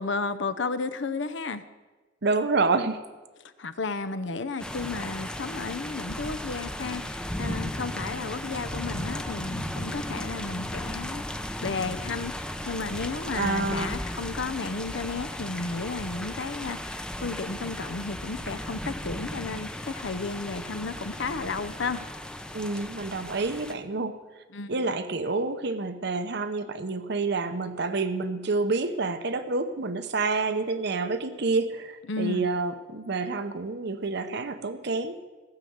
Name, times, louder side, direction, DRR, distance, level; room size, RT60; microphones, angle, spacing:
voice 1, 0.0-1.6 3.6-11.2 11.6-12.3 12.7-22.0 24.5-24.8 32.1-32.5, left 4 dB, 65° left, 12 dB, 0.7 m, -33 dB
voice 2, 2.2-3.1 13.3-14.0 22.5-24.2 24.7-35.2, right 3 dB, 60° right, 10 dB, 0.9 m, -28 dB
sound 1, 4.6-23.7, left 1 dB, 5° left, 0.6 m, -36 dB
15.5 x 6.7 x 7.9 m, 1.3 s
head